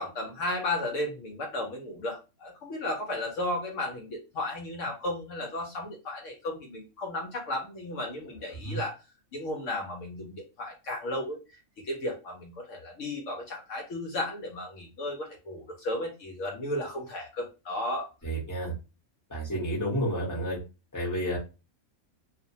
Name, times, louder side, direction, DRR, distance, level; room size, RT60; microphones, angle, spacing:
voice 1, 0.0-9.0 9.3-11.4 11.9-18.1, left 1 dB, 65° left, 1 dB, 0.9 m, -34 dB
voice 2, 18.2-18.8 19.3-20.6 20.9-21.4, right 1 dB, 15° left, -5 dB, 0.8 m, -30 dB
2.5 x 2.1 x 2.6 m, 0.30 s
omnidirectional pair, 1.5 m